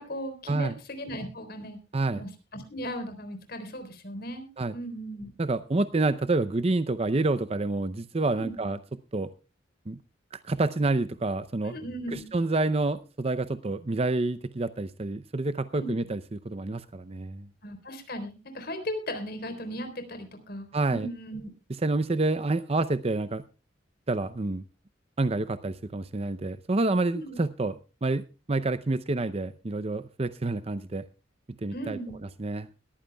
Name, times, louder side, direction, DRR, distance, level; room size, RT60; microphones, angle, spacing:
voice 1, 0.0-1.8 2.1-4.5 4.7-5.3 8.4-8.6 11.6-12.2 15.7-15.9 17.6-21.5 27.1-27.4 31.7-32.2, equal, 55° left, 7 dB, 3.8 m, -37 dB
voice 2, 5.4-8.8 9.1-9.3 9.9-10.0 10.4-11.8 12.1-17.5 20.7-21.1 21.8-23.4 24.1-24.6 25.2-27.7 28.0-28.2 28.5-31.0 31.6-32.0 32.4-32.7, right 2 dB, 30° right, 12 dB, 0.6 m, -28 dB
21.5 x 14.5 x 2.3 m, 0.31 s
head